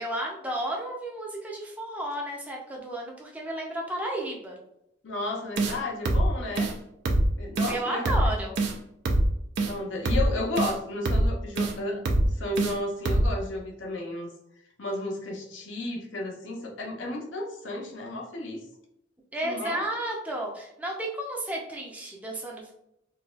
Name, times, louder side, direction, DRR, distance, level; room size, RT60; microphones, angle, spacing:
voice 1, 0.0-4.6 7.7-8.6 19.3-22.7, right 1 dB, 10° right, -2 dB, 0.5 m, -32 dB
voice 2, 5.0-6.7 7.4-8.5 9.6-12.0 12.3-14.3 14.8-18.6 19.4-19.8, left 2 dB, 70° left, 0 dB, 0.7 m, -33 dB
sound 1, 5.6-5.8 6.1-6.3 6.6-6.7 7.1-7.3 7.6-7.7 8.1-8.3 8.6-8.7 9.1-9.3 9.6-9.7 10.1-10.3 10.6-10.7 11.1-11.3 11.6-11.7 12.1-12.3 12.6-12.7 13.1-13.3, right 1 dB, 60° right, 0.4 m, -23 dB
3.9 x 2.3 x 2.4 m, 0.79 s
head